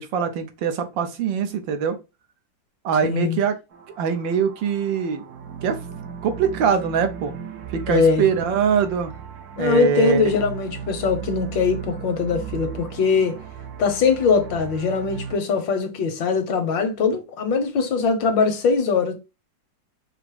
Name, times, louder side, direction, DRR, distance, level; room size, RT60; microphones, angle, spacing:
voice 1, 0.0-2.0 2.8-3.6 4.0-5.2 5.6-5.8 6.2-7.3 7.7-9.1 9.6-10.3, right 7 dB, 80° right, 1.5 m, -23 dB
voice 2, 3.0-3.4 7.9-8.3 9.6-13.4 13.8-19.1, left 5 dB, 75° left, 1.6 m, -21 dB
sound 1, 3.7-15.4, right 7 dB, 65° right, 1.1 m, -37 dB
4.9 x 2.0 x 4.7 m
omnidirectional pair, 2.0 m